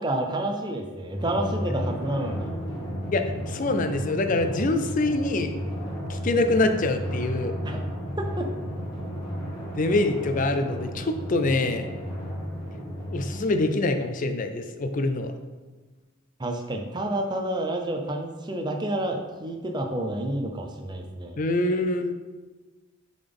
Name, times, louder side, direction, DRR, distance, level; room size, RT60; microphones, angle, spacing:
voice 1, 0.0-2.6 7.6-7.8 8.2-8.5 16.4-21.4, right 1 dB, 20° right, 3 dB, 0.6 m, -29 dB
Drum, 1.2-14.2, equal, 20° left, 1.1 m, -33 dB
voice 2, 3.1-5.5 6.1-7.5 9.7-11.9 13.1-15.3 21.4-22.1, left 2 dB, 40° left, 7 dB, 0.4 m, -25 dB
7.1 x 3.9 x 3.5 m, 1.3 s
head